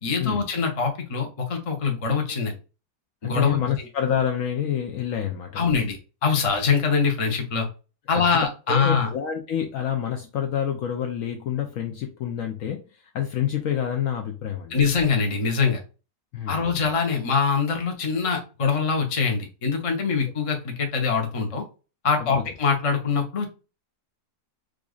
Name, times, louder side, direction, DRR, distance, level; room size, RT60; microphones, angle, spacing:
voice 1, 0.0-2.5 3.2-3.6 5.6-7.7 8.1-9.1 14.7-15.8 16.5-21.6 22.0-23.5, left 5 dB, 30° left, 0.6 m, -23 dB
voice 2, 3.2-5.9 8.1-8.4 8.7-14.8 16.3-16.6 22.2-22.4, left 9 dB, 70° left, 0.9 m, -28 dB
4.9 x 2.5 x 2.4 m
omnidirectional pair, 1.7 m